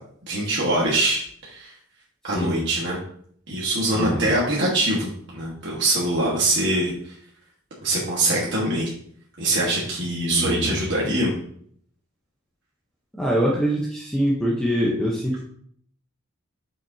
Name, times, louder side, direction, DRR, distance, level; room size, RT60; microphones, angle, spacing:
voice 1, 0.3-1.7 2.2-3.0 3.5-7.2 7.8-8.9 9.4-11.3, right 1 dB, 55° right, -5 dB, 1.5 m, -23 dB
voice 2, 2.2-2.6 3.9-4.3 10.3-10.8 13.1-15.4, equal, 5° left, -5 dB, 0.8 m, -24 dB
7.3 x 6.2 x 2.8 m, 0.63 s
head